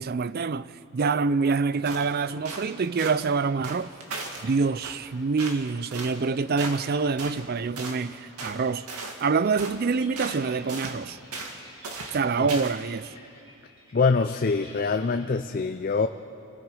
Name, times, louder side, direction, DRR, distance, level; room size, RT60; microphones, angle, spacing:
voice 1, 0.0-3.9 4.4-8.9 9.2-11.2 12.1-13.1, right 4 dB, 45° right, 0.4 m, -26 dB
sound 1, 1.9-2.1 2.5-2.7 3.0-3.2 3.6-4.5 4.8-5.0 5.4-5.6 5.9-6.2 6.6-6.9 7.2-7.4 7.8-8.0 8.4-8.6 8.9-9.3 9.6-9.8 10.2-10.4 10.7-11.0 11.3-11.6 11.8-12.2 12.5-12.8, right 3 dB, 85° right, 2.1 m, -37 dB
sound 2, 9.6-15.3, equal, 25° right, 6.1 m, -52 dB
voice 2, 13.9-16.1, left 4 dB, 40° left, 0.5 m, -24 dB
28.5 x 19.5 x 4.9 m
head